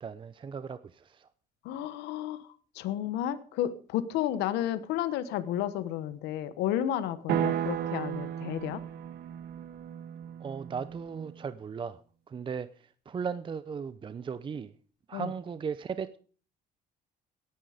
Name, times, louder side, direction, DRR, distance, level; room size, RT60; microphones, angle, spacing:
voice 1, 0.0-1.3 10.4-14.7 15.1-16.2, right 6 dB, 30° right, 14 dB, 0.6 m, -37 dB
voice 2, 1.6-8.8 15.1-15.3, left 11 dB, 90° left, 14 dB, 1.1 m, -32 dB
sound 1, 7.3-11.4, right 10 dB, 70° right, 1.3 m, -34 dB
17.5 x 10.0 x 5.1 m, 0.43 s
cardioid pair, 110°, 17 cm